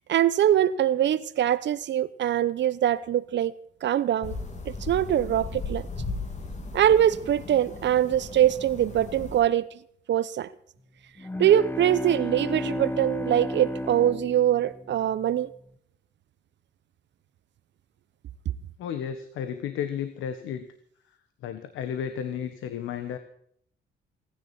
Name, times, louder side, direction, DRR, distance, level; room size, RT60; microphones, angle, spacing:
voice 1, 0.1-3.5 3.8-4.4 4.7-5.9 6.7-9.7 10.1-10.5 11.4-15.5, right 11 dB, 65° right, 0.8 m, -23 dB
sound 1, 4.2-9.4, left 3 dB, 35° left, 3.1 m, -37 dB
sound 2, 11.2-15.2, left 1 dB, 10° left, 0.9 m, -33 dB
voice 2, 18.8-20.7 21.4-23.2, left 8 dB, 85° left, 1.4 m, -33 dB
27.5 x 10.5 x 4.3 m
cardioid pair, 90°, 20 cm